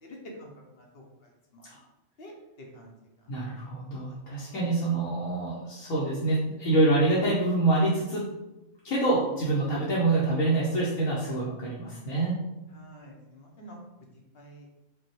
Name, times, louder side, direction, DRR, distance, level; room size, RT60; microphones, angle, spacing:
voice 1, 0.0-1.0 1.5-1.7 2.2-2.9 4.5-5.0 9.9-10.0 12.7-13.8 14.3-14.7, equal, 55° left, -1 dB, 0.9 m, -47 dB
voice 2, 3.3-8.2 8.8-12.4, right 2 dB, 75° left, -6 dB, 1.3 m, -26 dB
5.3 x 2.3 x 3.0 m, 0.96 s
omnidirectional pair, 1.4 m